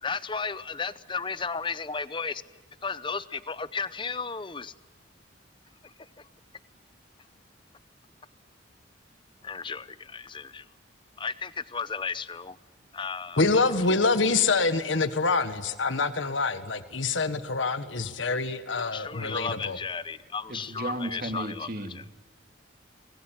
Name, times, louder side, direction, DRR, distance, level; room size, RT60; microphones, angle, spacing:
voice 1, 0.0-2.4 2.8-4.7 5.8-6.3 9.4-10.6 11.2-12.6 12.9-13.8 18.7-22.0, left 5 dB, 25° left, 15 dB, 0.8 m, -34 dB
voice 2, 13.4-19.8, left 3 dB, 80° left, 11 dB, 1.5 m, -26 dB
voice 3, 20.5-22.1, right 1 dB, 50° right, 6 dB, 2.5 m, -34 dB
24.5 x 21.0 x 9.1 m, 1.3 s
head